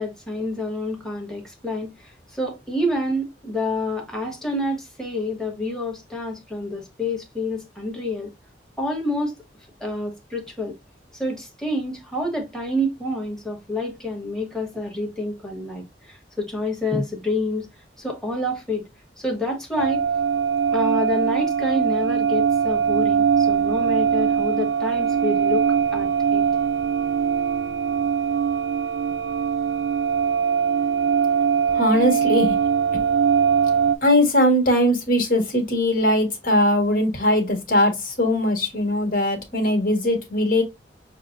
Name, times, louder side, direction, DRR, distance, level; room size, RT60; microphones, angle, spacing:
voice 1, 0.0-8.3 8.8-9.4 9.8-10.8 11.1-17.7 18.0-18.9 19.2-20.0 20.7-26.4, left 1 dB, 5° left, 1.2 m, -28 dB
sound 1, 19.8-34.0, right 7 dB, 75° right, 0.4 m, -21 dB
voice 2, 31.7-32.6 34.0-40.6, left 1 dB, 50° left, 1.4 m, -20 dB
6.4 x 2.1 x 2.5 m
head